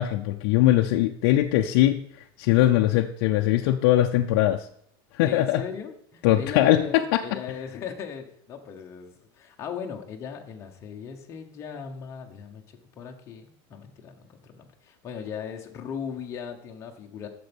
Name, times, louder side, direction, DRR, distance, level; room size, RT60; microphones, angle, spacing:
voice 1, 0.0-4.7 5.1-5.6 6.2-7.2, left 14 dB, 55° left, 3 dB, 0.6 m, -21 dB
voice 2, 5.2-12.6 12.9-17.3, left 7 dB, 20° left, 2 dB, 1.0 m, -38 dB
10.5 x 6.9 x 5.3 m, 0.68 s
supercardioid pair, 180°, 13 cm